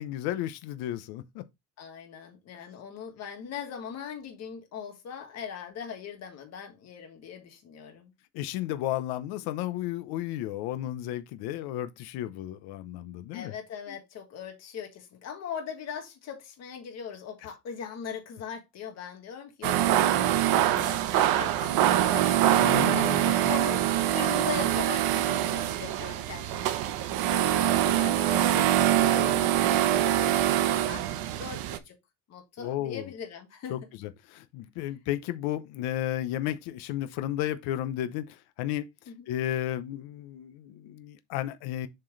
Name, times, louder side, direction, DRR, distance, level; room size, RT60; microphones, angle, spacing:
voice 1, 0.0-1.4 8.3-13.5 13.9-14.0 22.5-23.3 32.6-33.1 33.7-38.9 39.3-41.9, left 13 dB, 75° left, 0.9 m, -33 dB
voice 2, 1.8-8.1 13.3-31.1 31.4-32.0 32.3-33.9 39.1-39.3, left 7 dB, 40° left, 1.8 m, -40 dB
sound 1, 19.6-31.8, right 12 dB, 65° right, 1.0 m, -24 dB
7.4 x 4.5 x 3.2 m
cardioid pair, 170°, 39 cm